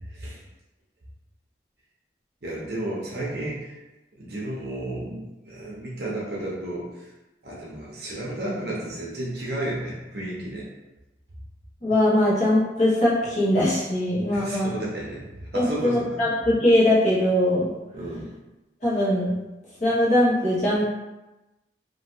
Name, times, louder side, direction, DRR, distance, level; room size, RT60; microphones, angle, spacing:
voice 1, 2.4-3.8 4.2-6.9 7.4-10.7 14.3-15.2 15.5-16.2 17.9-18.3, right 1 dB, 60° right, -5 dB, 0.8 m, -32 dB
voice 2, 11.8-14.7 15.5-17.7 18.8-19.4 19.8-20.9, left 1 dB, 40° left, -8 dB, 1.1 m, -21 dB
3.1 x 2.6 x 2.8 m, 1.0 s
head